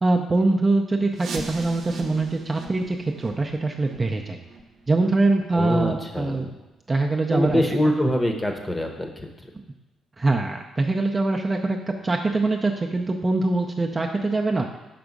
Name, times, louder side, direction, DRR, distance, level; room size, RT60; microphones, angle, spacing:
voice 1, 0.0-4.4 4.9-6.5 6.9-7.6 10.2-11.8 12.0-14.7, right 2 dB, 25° right, 2 dB, 0.6 m, -23 dB
sound 1, 1.1-6.7 7.1-7.2 7.7-7.8 8.4-8.5 9.1-9.2, right 3 dB, 60° right, 0.7 m, -41 dB
voice 2, 5.5-6.6 7.3-9.3, left 1 dB, 15° left, 3 dB, 0.9 m, -24 dB
6.0 x 3.5 x 5.2 m, 1.1 s
cardioid pair, 90°, 0 cm